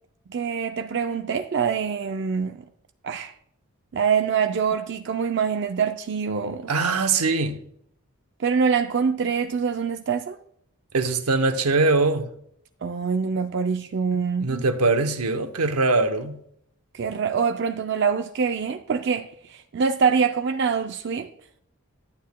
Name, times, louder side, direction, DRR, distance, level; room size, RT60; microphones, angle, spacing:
voice 1, 0.3-2.6 3.0-3.3 3.9-6.7 8.4-10.4 12.8-14.6 16.9-21.3, right 6 dB, 50° right, 0.4 m, -25 dB
voice 2, 6.7-7.6 10.9-12.3 14.4-16.4, right 3 dB, 85° right, 0.8 m, -22 dB
11.5 x 9.2 x 2.2 m
head